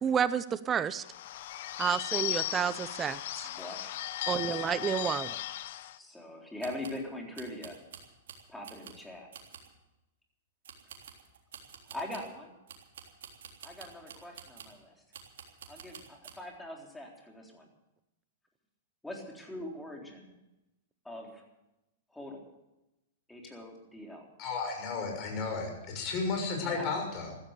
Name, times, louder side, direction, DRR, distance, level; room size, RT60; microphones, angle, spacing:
voice 1, 0.0-1.0 1.8-3.5 4.3-5.4, right 7 dB, 20° right, 16 dB, 0.6 m, -30 dB
Bird / Bell, 1.0-6.0, left 14 dB, 60° left, 0.8 m, -36 dB
voice 2, 3.4-4.0 4.5-4.9 6.0-7.8 8.5-9.3 11.9-12.5 13.6-15.0 15.7-17.7 19.0-20.4 21.0-21.4 22.1-22.5 23.3-24.3 26.6-26.9, left 1 dB, 5° left, 0 dB, 3.8 m, -42 dB
sound 1, 3.6-3.7 3.9-4.0 4.4-4.5 5.0-5.1 6.6-7.1 7.4-9.1 9.3-9.8 10.6-12.4 12.7-14.8 15.1-16.4, right 7 dB, 80° right, 3.5 m, -50 dB
voice 3, 24.4-27.3, left 4 dB, 35° left, 2 dB, 6.5 m, -33 dB
15.0 x 14.0 x 6.7 m, 0.94 s
hypercardioid pair, 135°, 0 cm